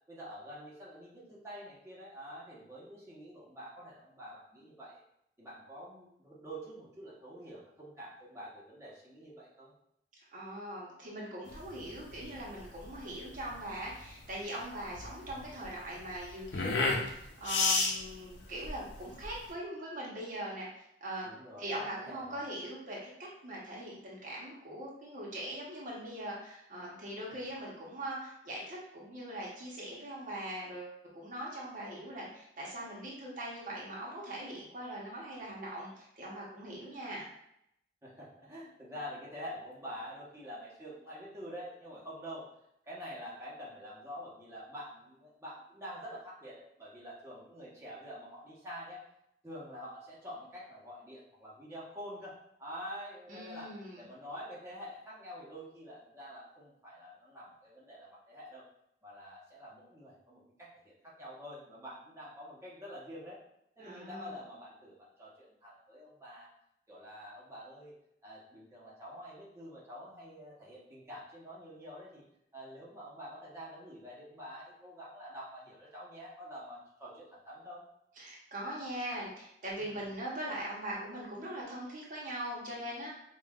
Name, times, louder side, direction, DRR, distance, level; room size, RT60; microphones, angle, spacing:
voice 1, 0.1-5.0 5.4-9.7 21.2-22.4 36.8-37.0 38.0-42.5 42.9-49.0 49.4-58.6 59.0-63.4 63.8-66.5 66.9-67.9 68.2-72.2 72.5-77.8 79.9-80.1, equal, 15° right, -7 dB, 0.9 m, -47 dB
voice 2, 10.2-21.3 21.6-37.3 53.3-54.1 63.8-64.3 78.2-83.1, right 1 dB, 50° right, -4 dB, 0.9 m, -41 dB
sound 1, 11.5-19.5, left 3 dB, 85° left, 0.6 m, -34 dB
5.2 x 2.4 x 2.4 m, 0.76 s
head